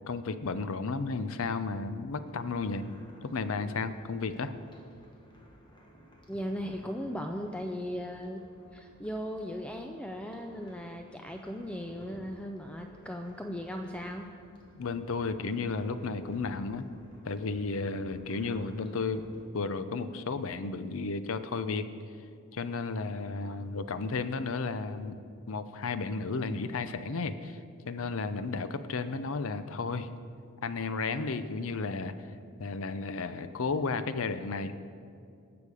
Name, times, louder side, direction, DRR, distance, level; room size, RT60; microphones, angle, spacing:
voice 1, 0.1-2.8 3.2-4.5 14.7-16.8 17.2-19.2 19.5-21.9 22.5-25.1 25.5-27.6 27.9-30.1 30.6-32.1 32.6-34.7, left 4 dB, 65° left, 12 dB, 0.6 m, -33 dB
sound 1, 2.1-19.5, equal, 20° left, 1.3 m, -55 dB
voice 2, 6.3-8.4 8.7-14.3, equal, 5° left, 4 dB, 0.4 m, -37 dB
18.5 x 7.0 x 4.9 m, 2.4 s
head